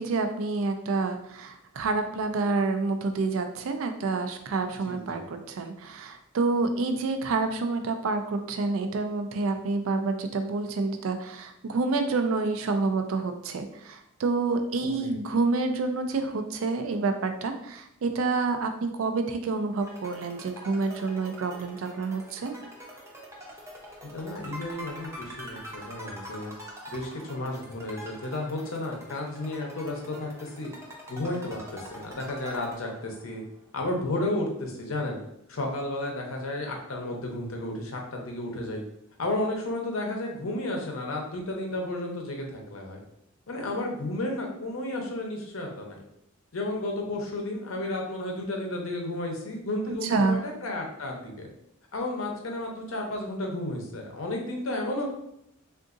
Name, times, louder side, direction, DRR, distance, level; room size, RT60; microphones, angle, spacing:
voice 1, 0.0-22.6 50.1-50.4, right 3 dB, 70° right, 7 dB, 0.4 m, -28 dB
voice 2, 4.8-5.3 14.8-15.1 24.1-26.5 26.9-30.7 31.1-33.4 33.7-35.2 35.5-38.8 39.2-43.0 43.5-46.0 46.5-51.5 51.9-55.1, left 1 dB, 70° left, 1 dB, 0.7 m, -32 dB
sound 1, 19.8-33.4, equal, 15° right, 0.5 m, -45 dB
3.7 x 2.5 x 2.5 m, 0.77 s
head